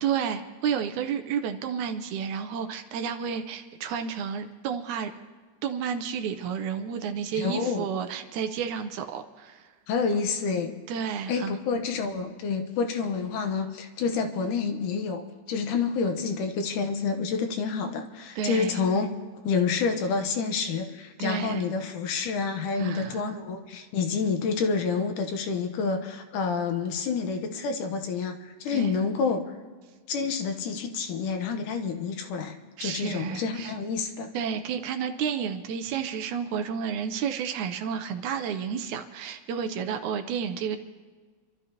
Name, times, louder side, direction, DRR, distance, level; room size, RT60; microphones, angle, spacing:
voice 1, 0.0-5.1 5.6-9.7 10.9-11.6 18.4-18.8 21.2-21.7 22.8-23.3 28.7-28.9 32.8-33.7 34.3-40.8, right 7 dB, 80° right, 7 dB, 2.0 m, -31 dB
voice 2, 7.4-7.9 9.9-10.7 11.3-19.1 19.4-29.5 30.1-32.5 32.8-34.3, left 5 dB, 80° left, 6 dB, 2.5 m, -28 dB
28.0 x 13.0 x 2.9 m, 1.5 s
omnidirectional pair, 3.7 m